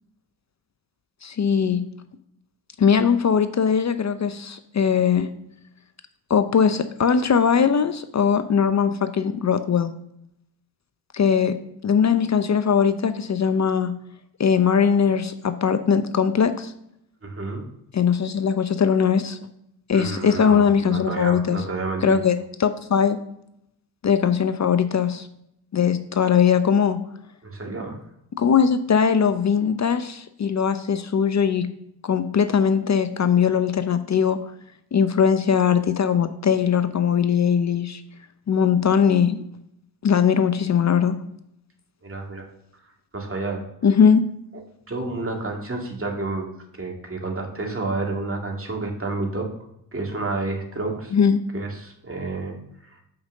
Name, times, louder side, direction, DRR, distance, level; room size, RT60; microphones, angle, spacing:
voice 1, 1.2-1.8 2.8-5.3 6.3-9.9 11.1-11.5 11.8-13.9 14.4-16.7 17.9-19.4 19.9-21.6 22.0-23.2 24.0-25.3 25.7-27.0 28.4-31.7 32.0-34.4 34.9-38.0 38.5-39.4 40.0-41.2 43.8-44.2 51.1-51.4, left 7 dB, 35° left, 11 dB, 0.7 m, -20 dB
voice 2, 17.2-17.7 19.9-22.2 27.4-28.0 42.0-42.4 43.1-43.6 44.9-46.5 46.7-49.5 49.9-51.2 51.5-52.6, right 3 dB, 25° right, 1 dB, 2.3 m, -30 dB
5.7 x 5.2 x 6.6 m, 0.78 s
hypercardioid pair, 50°, 49 cm